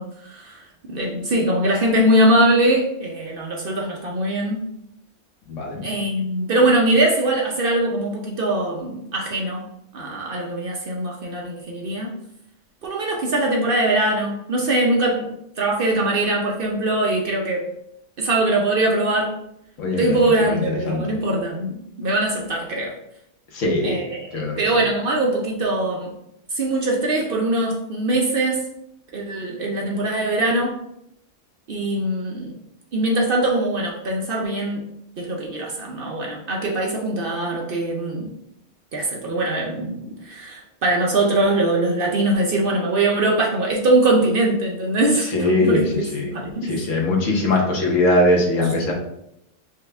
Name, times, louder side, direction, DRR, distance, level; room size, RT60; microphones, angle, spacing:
voice 1, 0.0-4.6 5.8-9.6 9.9-12.1 12.8-15.3 15.6-17.6 18.2-19.3 20.0-22.9 23.8-24.2 24.6-26.1 26.5-28.6 29.1-30.7 31.7-32.5 32.9-34.8 35.2-38.3 38.9-45.3 45.6-45.8 46.3-46.7, right 1 dB, 55° right, -1 dB, 0.7 m, -22 dB
voice 2, 5.5-5.9 19.8-20.2 20.5-21.0 23.5-24.1 24.3-24.8 45.2-46.3 46.6-48.9, left 2 dB, 75° left, 0 dB, 1.3 m, -21 dB
4.7 x 2.3 x 3.3 m, 0.77 s
omnidirectional pair, 1.3 m